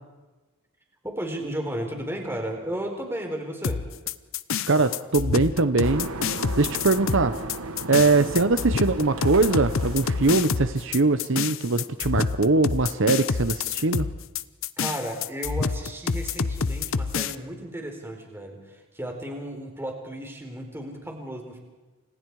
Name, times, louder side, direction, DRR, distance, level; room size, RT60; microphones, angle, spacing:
voice 1, 1.0-3.9 7.8-8.1 14.8-21.6, right 1 dB, 10° right, 2 dB, 4.3 m, -34 dB
sound 1, 3.6-17.4, left 5 dB, 60° left, 0.7 m, -28 dB
voice 2, 4.7-6.1 6.6-7.3 7.9-14.1, right 3 dB, 60° right, 10 dB, 0.9 m, -22 dB
sound 2, 5.8-11.0, right 2 dB, 75° right, 1.4 m, -36 dB
29.5 x 26.5 x 4.8 m, 1.2 s
head